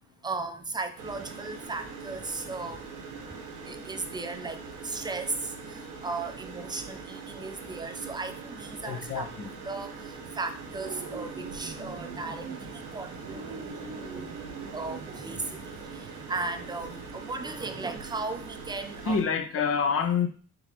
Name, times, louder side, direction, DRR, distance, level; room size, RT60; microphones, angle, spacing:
voice 1, 0.2-2.8 3.7-9.3 9.6-9.9 10.4-13.7 13.9-14.3 14.7-19.2, right 3 dB, 15° right, 8 dB, 0.5 m, -36 dB
sound 1, 1.0-19.2, right 4 dB, 90° right, 0.8 m, -42 dB
voice 2, 8.8-9.5 19.1-20.3, left 6 dB, 50° left, 6 dB, 0.8 m, -27 dB
sound 2, 10.8-16.9, right 5 dB, 55° right, 0.8 m, -43 dB
3.8 x 3.6 x 2.9 m, 0.40 s
cardioid pair, 90°, 30 cm